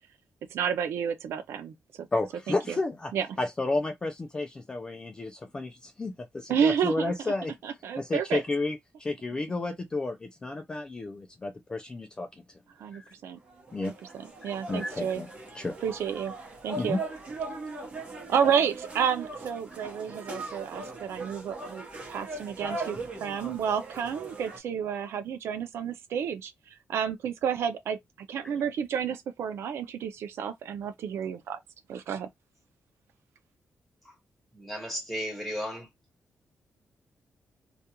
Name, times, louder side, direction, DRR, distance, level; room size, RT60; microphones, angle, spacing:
voice 1, 0.5-1.7 2.5-2.8 3.1-3.3 6.5-7.1 7.6-8.4 12.8-13.4 13.8-15.2 15.8-16.3 16.6-17.0 18.3-21.8 22.1-31.6 31.9-32.3, right 7 dB, 85° right, 0.4 m, -30 dB
voice 2, 2.1-3.1 3.4-7.5 8.0-12.4 12.9-13.1 13.7-13.9 14.4-15.8 16.8-17.0, left 2 dB, 20° left, 0.3 m, -32 dB
sound 1, 13.5-24.6, right 3 dB, 30° right, 0.9 m, -39 dB
voice 3, 34.5-35.9, equal, 5° left, 1.1 m, -35 dB
2.4 x 2.2 x 2.8 m
wide cardioid pair, 165°, 4 cm